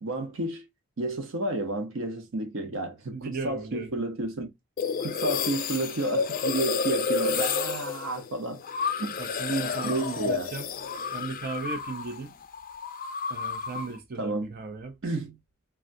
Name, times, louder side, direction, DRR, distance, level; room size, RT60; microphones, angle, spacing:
voice 1, 0.0-0.7 1.0-4.5 5.0-8.6 9.0-9.2 9.5-10.5 14.2-14.5 15.0-15.4, right 2 dB, 90° right, 0.8 m, -31 dB
voice 2, 3.1-3.9 9.2-10.7 11.1-12.3 13.3-15.0, right 4 dB, 50° right, 0.5 m, -36 dB
sound 1, 4.8-12.2 12.4-14.0, left 5 dB, 45° left, 0.4 m, -30 dB
3.4 x 2.2 x 2.5 m
head